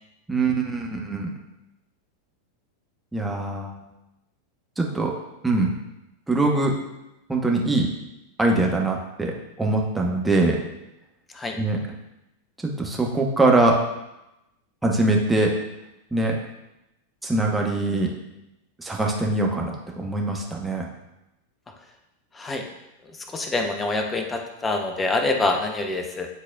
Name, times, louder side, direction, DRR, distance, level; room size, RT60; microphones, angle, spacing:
voice 1, 0.3-1.3 3.1-3.8 4.8-5.1 5.4-5.7 6.3-6.7 7.3-7.9 8.4-10.6 11.6-11.8 12.8-13.8 14.8-15.6 16.1-16.3 17.2-18.1 18.8-20.9, right 2 dB, 5° right, 0 dB, 1.1 m, -22 dB
voice 2, 23.3-26.3, left 2 dB, 15° left, 4 dB, 0.8 m, -25 dB
10.0 x 4.0 x 2.4 m, 0.92 s
figure-of-eight pair, 90°, 0 cm